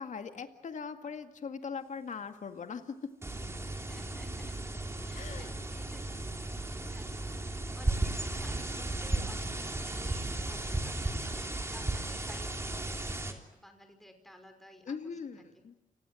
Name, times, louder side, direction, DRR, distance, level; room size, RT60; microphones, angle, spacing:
voice 1, 0.0-2.9 5.1-5.5 14.9-15.7, left 5 dB, 65° left, 7 dB, 2.0 m, -40 dB
sound 1, 3.2-13.3, right 2 dB, 20° right, 3.4 m, -35 dB
voice 2, 3.9-4.6 5.1-6.2 6.6-12.5 13.0-15.0, equal, ahead, 6 dB, 5.3 m, -54 dB
30.0 x 19.0 x 7.7 m, 0.96 s
cardioid pair, 80°, 14 cm